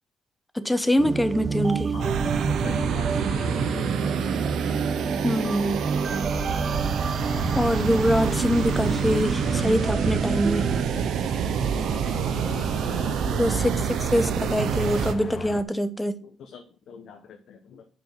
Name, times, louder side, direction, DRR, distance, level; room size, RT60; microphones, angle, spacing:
voice 1, 0.5-2.0 5.2-5.8 7.5-10.7 13.3-13.7 14.0-16.1, equal, 5° left, 0.9 m, -24 dB
sound 1, 1.0-10.8, right 5 dB, 40° right, 0.3 m, -29 dB
voice 2, 1.9-4.2 5.3-5.7 11.7-13.6 15.3-15.5 16.2-17.9, left 7 dB, 70° left, 1.0 m, -43 dB
sound 2, 2.0-15.1, right 7 dB, 75° right, 0.8 m, -27 dB
sound 3, 2.7-15.6, left 6 dB, 50° left, 0.7 m, -38 dB
7.1 x 5.6 x 5.9 m
cardioid pair, 90°, 0 cm